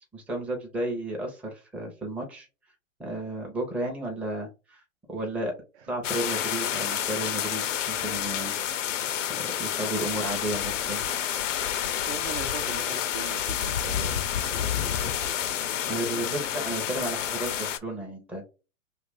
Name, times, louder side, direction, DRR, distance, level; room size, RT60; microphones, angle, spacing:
voice 1, 0.1-2.5 3.0-4.8 5.1-5.5 5.9-8.5 9.6-11.0 15.9-18.4, right 1 dB, 5° right, 0.6 m, -33 dB
sound 1, 6.0-17.8, left 10 dB, 65° left, 0.6 m, -29 dB
voice 2, 12.1-15.4, right 7 dB, 55° right, 0.7 m, -40 dB
2.7 x 2.5 x 3.8 m
hypercardioid pair, 110°, 40 cm